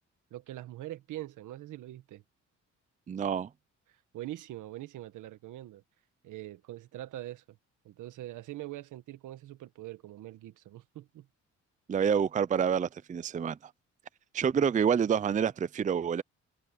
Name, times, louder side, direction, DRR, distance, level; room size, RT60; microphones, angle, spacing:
voice 1, 0.3-2.2 3.9-5.8 6.2-7.6 7.8-11.3, right 15 dB, 85° right, 1.7 m, -43 dB
voice 2, 3.1-3.5 11.9-13.7 14.3-16.2, right 7 dB, 25° right, 0.5 m, -28 dB
cardioid pair, 90°, 30 cm